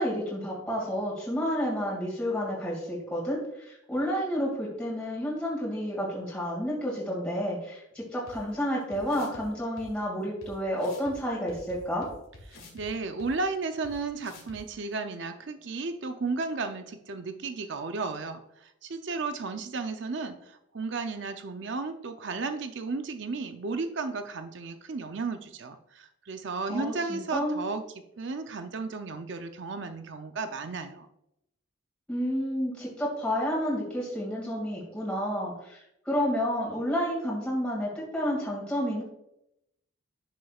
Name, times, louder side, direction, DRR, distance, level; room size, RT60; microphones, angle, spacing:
voice 1, 0.0-3.4 3.7-12.1 26.7-27.6 32.1-35.8 36.1-39.0, equal, 5° left, -6 dB, 2.2 m, -30 dB
sound 1, 8.3-8.4 8.9-9.4 9.8-9.9 10.4-10.5 10.8-11.1 11.5-12.9 13.2-13.3 13.8-13.9 14.2-14.6, left 2 dB, 85° left, 2.3 m, -49 dB
voice 2, 12.7-18.4 18.8-27.8 28.2-31.1, right 4 dB, 55° right, 8 dB, 0.5 m, -34 dB
11.0 x 6.4 x 2.4 m, 0.80 s
head